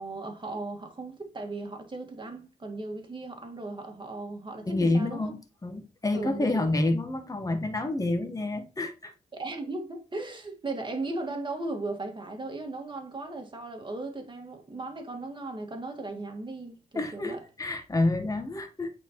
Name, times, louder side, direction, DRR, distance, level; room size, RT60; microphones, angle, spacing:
voice 1, 0.0-5.3 6.1-6.7 9.3-17.5, right 2 dB, 35° right, 1.7 m, -37 dB
voice 2, 4.7-9.1 16.9-18.9, left 2 dB, 25° left, 1.1 m, -28 dB
8.2 x 4.0 x 2.9 m
cardioid pair, 55°, 15 cm